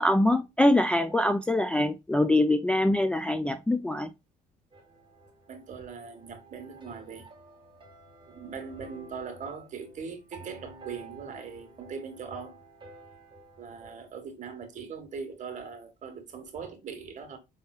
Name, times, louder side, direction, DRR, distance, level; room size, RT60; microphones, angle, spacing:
voice 1, 0.0-4.1, left 1 dB, 5° left, 0.3 m, -24 dB
sound 1, 4.7-14.1, right 2 dB, 30° right, 1.6 m, -52 dB
voice 2, 5.5-7.3 8.2-12.6 13.6-17.4, right 5 dB, 45° right, 1.5 m, -40 dB
5.3 x 3.5 x 2.3 m
cardioid pair, 110°, 17 cm